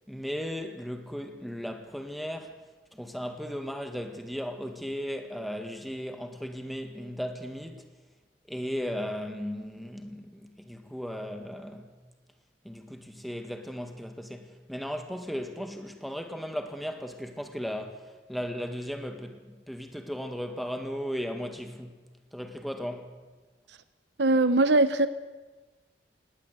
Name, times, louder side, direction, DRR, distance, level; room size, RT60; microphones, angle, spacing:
voice 1, 0.1-2.6 2.9-7.8 8.5-12.0 12.6-22.0 22.3-23.1, equal, ahead, 1.8 m, -36 dB
voice 2, 24.2-25.1, right 2 dB, 65° right, 0.9 m, -21 dB
19.0 x 18.5 x 8.3 m
head